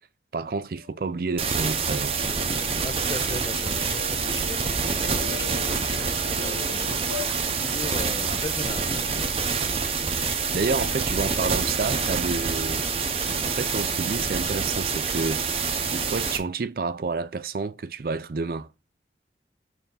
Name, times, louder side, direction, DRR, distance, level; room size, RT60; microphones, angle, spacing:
voice 1, 0.3-2.2 10.5-12.8 13.4-15.4 15.9-18.7, right 4 dB, 55° right, 0.4 m, -29 dB
sound 1, 0.6-7.9, left 6 dB, 90° left, 0.9 m, -42 dB
sound 2, 1.4-16.4, right 5 dB, 35° right, 0.8 m, -27 dB
voice 2, 2.8-9.0, left 2 dB, 30° left, 0.7 m, -38 dB
sound 3, 6.0-6.4 7.1-8.1 8.4-8.7 9.5-9.6 10.2-10.3 10.4-10.5 10.7-11.4 11.9-12.3 12.6-12.7, right 1 dB, 10° right, 1.1 m, -48 dB
6.7 x 3.5 x 5.4 m
head